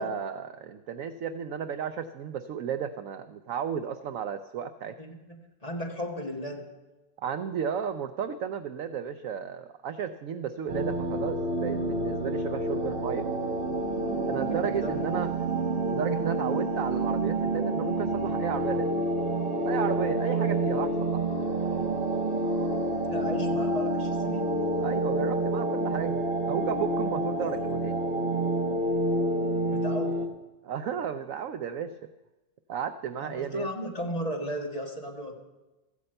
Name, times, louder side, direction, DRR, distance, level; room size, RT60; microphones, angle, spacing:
voice 1, 0.0-5.0 7.2-13.3 14.3-18.9 19.6-21.2 24.8-28.0 30.6-32.0 32.7-33.7, right 8 dB, 75° right, 10 dB, 0.7 m, -33 dB
voice 2, 5.0-6.6 14.3-15.1 23.1-24.6 27.4-27.5 29.7-30.2 33.2-35.3, equal, 20° left, 0 dB, 1.6 m, -35 dB
sound 1, 10.7-30.3, right 2 dB, 35° right, 1.1 m, -28 dB
14.0 x 8.7 x 7.8 m, 1.1 s
omnidirectional pair, 1.9 m